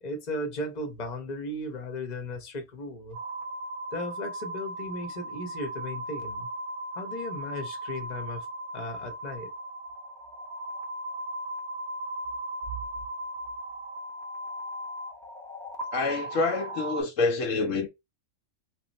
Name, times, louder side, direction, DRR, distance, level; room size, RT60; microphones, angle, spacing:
voice 1, 0.0-3.2 3.9-6.5 6.9-8.5 8.7-9.5, left 1 dB, 35° left, 0.9 m, -36 dB
sound 1, 3.1-17.0, right 1 dB, 5° left, 0.7 m, -37 dB
voice 2, 15.9-17.9, left 3 dB, 70° left, 1.0 m, -27 dB
3.0 x 2.3 x 4.0 m
omnidirectional pair, 1.4 m